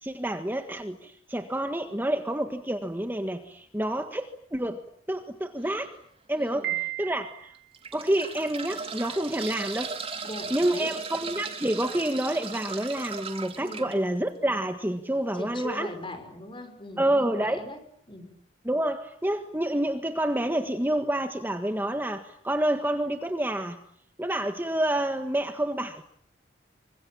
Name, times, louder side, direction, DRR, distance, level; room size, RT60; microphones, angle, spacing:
voice 1, 0.0-4.8 5.1-5.9 6.3-7.5 7.9-9.9 10.5-15.9 17.0-17.6 18.6-23.8 24.2-26.0, right 1 dB, 10° right, 7 dB, 1.6 m, -28 dB
sound 1, 5.6-5.9 6.5-6.6 7.5-13.9 15.5-15.7 15.9-16.0, right 5 dB, 35° right, 3.5 m, -37 dB
voice 2, 6.4-6.8 10.2-10.9 13.6-13.9 15.3-17.8 18.1-18.3, left 1 dB, 30° left, 8 dB, 6.1 m, -40 dB
Piano, 6.6-7.7, right 16 dB, 55° right, 2.5 m, -33 dB
27.0 x 25.5 x 8.8 m, 0.65 s
head